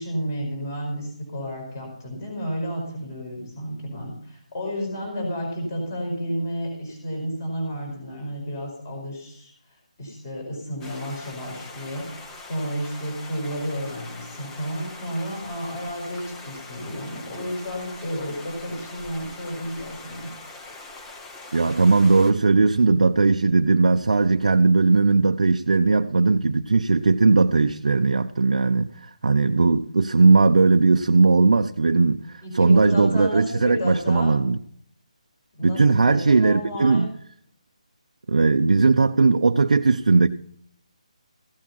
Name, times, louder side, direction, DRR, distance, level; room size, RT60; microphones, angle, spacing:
voice 1, 0.0-20.3 32.4-34.3 35.5-37.1, equal, 25° left, 5.0 m, -32 dB
sound 1, 10.8-22.3, left 3 dB, 10° left, 0.7 m, -42 dB
voice 2, 21.5-34.6 35.6-37.1 38.3-40.3, right 3 dB, 75° right, 0.7 m, -18 dB
15.5 x 8.7 x 5.5 m
hypercardioid pair, 175°, 4 cm